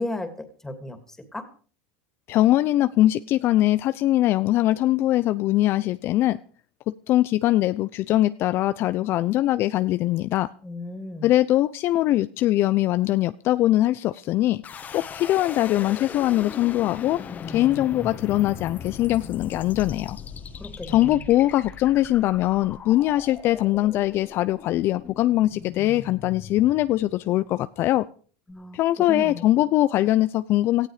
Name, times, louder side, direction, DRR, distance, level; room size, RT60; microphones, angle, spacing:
voice 1, 0.0-1.5 10.6-11.3 20.6-21.2 28.5-29.4 30.0-30.1, left 1 dB, 10° left, 3.0 m, -35 dB
voice 2, 2.3-6.4 7.1-10.5 11.2-14.6 14.9-17.2 17.5-20.2 20.9-28.1 28.7-30.9, left 15 dB, 50° left, 0.6 m, -22 dB
sound 1, 14.6-27.6, left 7 dB, 35° left, 1.9 m, -39 dB
18.0 x 14.0 x 5.0 m
supercardioid pair, 115°, 5 cm